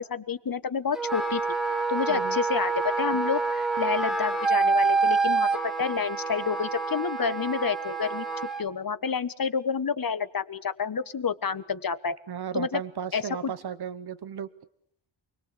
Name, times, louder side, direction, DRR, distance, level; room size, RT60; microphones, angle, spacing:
voice 1, 0.0-1.4 1.9-8.3 8.6-12.2 12.5-12.8 13.1-13.5, left 6 dB, 45° left, 13 dB, 1.4 m, -29 dB
Wind instrument woodwind instrument, 0.9-8.6, right 4 dB, ahead, 2.0 m, -27 dB
voice 2, 12.3-14.5, right 8 dB, 55° right, 13 dB, 1.1 m, -35 dB
28.5 x 21.5 x 8.4 m, 0.67 s
wide cardioid pair, 130°, 46 cm